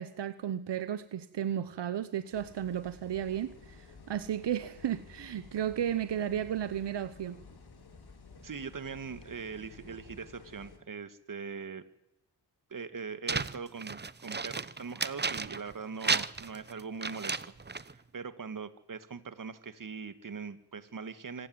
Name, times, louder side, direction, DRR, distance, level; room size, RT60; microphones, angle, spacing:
voice 1, 0.0-7.4, right 10 dB, 80° right, 14 dB, 1.1 m, -34 dB
sound 1, 2.3-10.8, left 4 dB, 65° left, 4.1 m, -53 dB
voice 2, 8.4-11.8 12.7-21.5, right 5 dB, 50° right, 13 dB, 1.9 m, -41 dB
sound 2, 13.3-15.7 16.0-17.9, right 4 dB, 25° right, 1.0 m, -33 dB
25.5 x 15.5 x 9.5 m, 0.88 s
cardioid pair, 80°, 42 cm